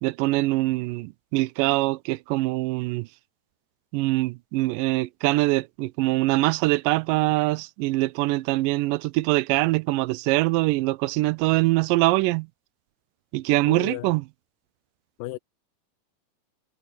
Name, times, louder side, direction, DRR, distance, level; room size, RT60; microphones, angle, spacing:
voice 1, 0.0-3.1 3.9-12.5 13.3-14.2, right 19 dB, 85° right, 2.2 m, -23 dB
voice 2, 13.7-14.1 15.2-15.4, left 18 dB, 90° left, 2.3 m, -34 dB
omnidirectional pair, 3.8 m